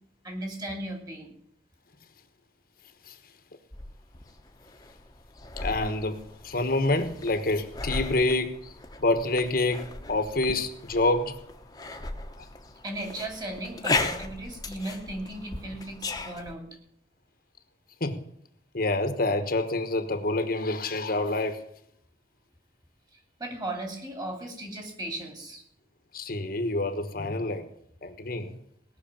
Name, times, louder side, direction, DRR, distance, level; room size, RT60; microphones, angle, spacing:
voice 1, 0.2-1.3 12.8-16.7 23.4-25.6, right 1 dB, 25° right, 3 dB, 2.9 m, -36 dB
sound 1, 3.7-16.5, left 3 dB, 20° left, 1.1 m, -36 dB
voice 2, 5.6-6.2 6.4-8.7 9.0-11.4 12.4-12.5 18.0-18.2 18.7-21.6 26.1-27.7 28.0-28.5, left 2 dB, 55° left, 8 dB, 1.2 m, -27 dB
18.0 x 6.5 x 8.9 m, 0.71 s
head